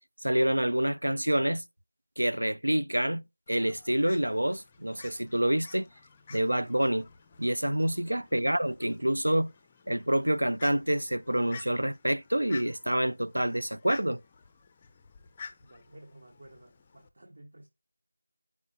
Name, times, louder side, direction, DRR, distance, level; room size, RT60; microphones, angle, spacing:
voice 1, 0.2-1.6 2.2-5.9 6.3-7.1 7.4-9.5 9.9-14.2, right 1 dB, 85° right, 0.4 m, -27 dB
Fowl, 3.5-17.1, left 5 dB, 15° left, 0.4 m, -51 dB
voice 2, 15.6-17.7, right 1 dB, 50° right, 1.1 m, -53 dB
9.0 x 4.7 x 2.6 m
figure-of-eight pair, 170°, 0 cm